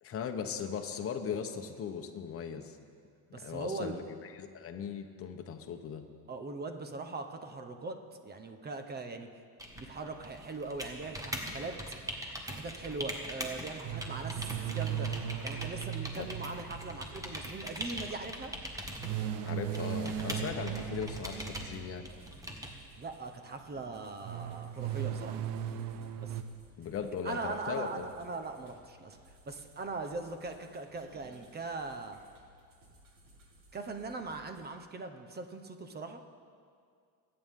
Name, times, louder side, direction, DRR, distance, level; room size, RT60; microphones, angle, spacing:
voice 1, 0.0-2.8 3.3-6.0 16.2-16.3 19.4-22.1 26.8-28.1, left 7 dB, 35° left, 5 dB, 1.0 m, -38 dB
voice 2, 3.3-3.9 6.3-9.3 9.7-11.8 12.5-15.1 15.4-18.5 22.9-25.4 26.2-26.4 27.2-32.2 33.7-36.2, right 3 dB, 25° right, 6 dB, 1.0 m, -40 dB
sound 1, 9.6-22.7, equal, 10° right, 1.3 m, -42 dB
sound 2, 13.8-17.4 19.0-22.1 24.2-26.4, right 9 dB, 85° right, 0.8 m, -37 dB
sound 3, 19.9-34.7, right 1 dB, 55° right, 2.4 m, -60 dB
22.5 x 8.9 x 3.7 m, 2.2 s
cardioid pair, 130°, 39 cm